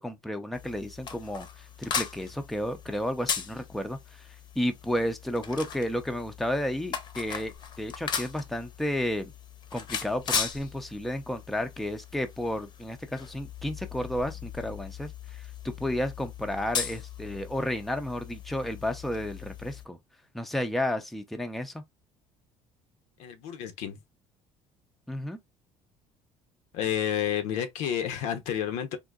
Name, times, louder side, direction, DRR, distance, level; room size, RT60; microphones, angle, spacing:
voice 1, 0.0-4.3 4.6-9.3 9.7-20.0 20.3-21.8 25.1-25.4, left 1 dB, ahead, 0.4 m, -32 dB
sound 1, 0.5-19.9, left 7 dB, 40° left, 0.7 m, -38 dB
voice 2, 23.2-24.0 26.7-29.0, left 9 dB, 80° left, 0.8 m, -30 dB
3.7 x 2.6 x 2.3 m
cardioid pair, 140°, 12 cm